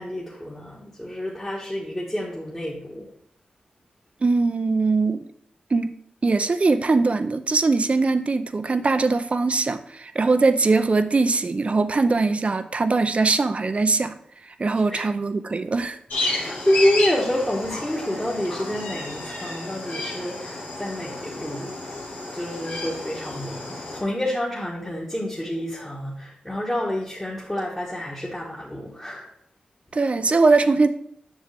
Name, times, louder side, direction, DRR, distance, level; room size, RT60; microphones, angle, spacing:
voice 1, 0.0-3.1 14.9-15.1 16.2-21.7 22.3-29.3, left 1 dB, 15° left, -5 dB, 1.6 m, -28 dB
voice 2, 4.2-5.3 5.7-5.9 6.2-14.2 14.4-16.0 29.9-30.9, right 3 dB, 45° right, 10 dB, 0.6 m, -21 dB
sound 1, 16.1-24.0, left 2 dB, 80° left, 1.9 m, -31 dB
7.3 x 6.3 x 3.5 m, 0.70 s
cardioid pair, 55°, 3 cm